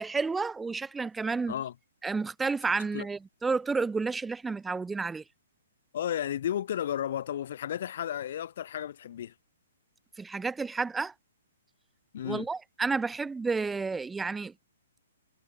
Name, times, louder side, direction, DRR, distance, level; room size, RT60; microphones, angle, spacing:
voice 1, 0.0-1.5 2.0-5.2 10.2-11.1 12.2-14.5, right 4 dB, 10° right, 0.6 m, -31 dB
voice 2, 5.9-9.3 12.1-12.5, left 10 dB, 50° left, 0.4 m, -33 dB
figure-of-eight pair, 120°, 0 cm